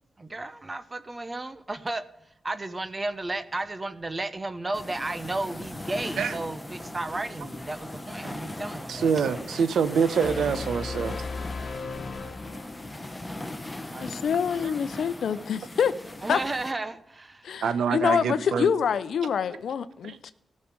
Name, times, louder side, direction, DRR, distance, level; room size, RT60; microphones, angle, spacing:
voice 1, 0.2-9.4 13.9-14.2 16.2-17.6, right 2 dB, 30° right, 0.9 m, -34 dB
sound 1, 4.7-16.7, left 1 dB, 15° left, 1.5 m, -39 dB
voice 2, 8.9-11.1 14.6-14.7 17.6-18.7 20.0-20.2, right 6 dB, 90° right, 0.9 m, -25 dB
sound 2, 10.2-13.1, left 4 dB, 50° left, 1.7 m, -36 dB
voice 3, 14.0-15.9 16.3-16.4 17.4-20.3, left 7 dB, 80° left, 0.6 m, -26 dB
14.5 x 6.5 x 8.7 m
cardioid pair, 70°, 0 cm